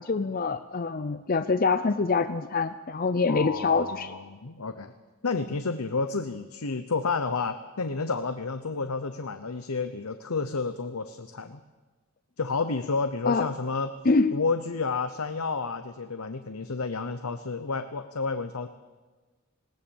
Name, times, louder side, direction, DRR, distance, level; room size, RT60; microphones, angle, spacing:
voice 1, 0.0-4.2 13.3-13.5 14.1-14.4, left 4 dB, 40° left, 11 dB, 0.5 m, -25 dB
voice 2, 3.3-4.9 5.2-11.6 12.4-13.9 14.3-18.7, left 4 dB, 85° left, 10 dB, 0.9 m, -30 dB
20.0 x 19.0 x 7.2 m, 1.3 s
head